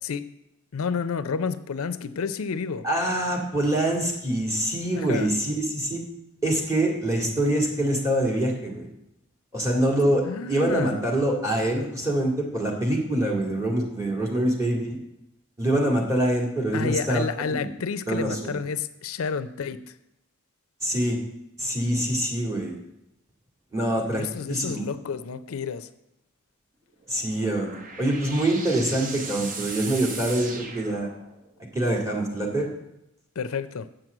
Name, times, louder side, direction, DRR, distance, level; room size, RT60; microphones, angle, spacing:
voice 1, 0.7-2.9 4.9-5.3 10.2-11.0 16.7-20.0 24.2-25.9 33.4-33.9, left 5 dB, 80° left, 13 dB, 0.5 m, -30 dB
voice 2, 2.8-6.0 6.4-8.9 9.5-15.0 15.6-17.2 17.5-17.7 18.1-18.5 20.8-21.2 21.6-22.8 23.7-24.2 24.5-24.8 27.1-31.1 31.7-32.7, right 1 dB, 15° right, -2 dB, 2.0 m, -25 dB
sound 1, 27.0-31.6, right 4 dB, 40° right, 0.8 m, -38 dB
7.8 x 6.1 x 7.7 m, 0.86 s
head